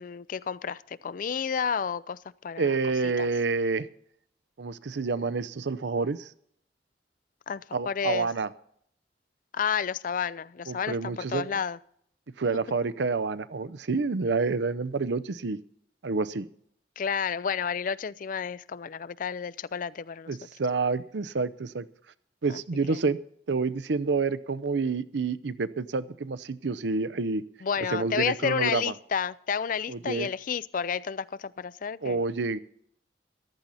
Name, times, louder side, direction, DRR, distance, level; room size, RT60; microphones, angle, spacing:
voice 1, 0.0-2.8 3.0-3.3 7.5-8.3 9.5-11.8 17.0-20.4 22.5-22.6 22.9-23.0 27.6-32.2, left 7 dB, 50° left, 0.4 m, -31 dB
voice 2, 2.6-3.9 4.6-6.3 7.7-8.5 10.7-11.5 12.4-15.6 16.0-16.5 20.3-21.9 22.4-23.2 23.5-27.4 27.9-28.9 29.9-30.3 32.0-32.6, right 4 dB, 80° right, 0.6 m, -28 dB
14.5 x 12.0 x 4.1 m
head